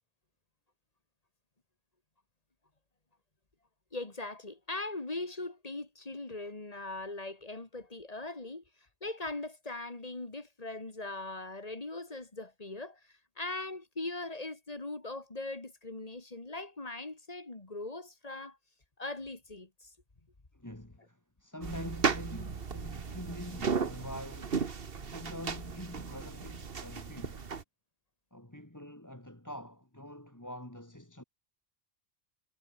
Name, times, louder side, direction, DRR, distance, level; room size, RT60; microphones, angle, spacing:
voice 1, 3.9-8.6 9.0-18.6 19.0-19.9, left 2 dB, 35° left, 2.2 m, -40 dB
voice 2, 20.5-27.4 28.3-31.2, left 1 dB, 15° left, 3.1 m, -45 dB
sound 1, 21.6-27.6, right 5 dB, 55° right, 1.5 m, -35 dB
omnidirectional pair, 1.2 m